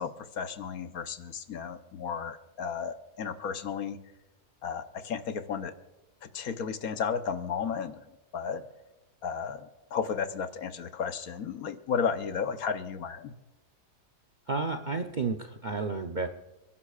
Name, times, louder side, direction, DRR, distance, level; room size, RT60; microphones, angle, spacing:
voice 1, 0.0-4.0 4.6-5.7 6.2-8.0 8.3-8.6 9.2-13.3, left 6 dB, 65° left, 9 dB, 1.3 m, -33 dB
voice 2, 14.5-16.3, right 4 dB, 45° right, 7 dB, 0.6 m, -31 dB
29.5 x 11.5 x 2.4 m, 1.1 s
omnidirectional pair, 1.7 m